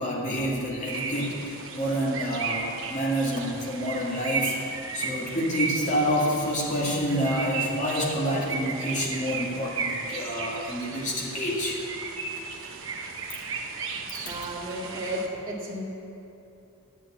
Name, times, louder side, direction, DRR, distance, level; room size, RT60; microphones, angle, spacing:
voice 1, 0.0-4.6 4.9-11.8, equal, 35° left, -4 dB, 2.1 m, -28 dB
sound 1, 0.9-15.3, right 4 dB, 60° right, 1.0 m, -35 dB
voice 2, 14.2-15.8, right 1 dB, 20° right, -7 dB, 2.0 m, -33 dB
9.8 x 7.8 x 8.7 m, 2.9 s
head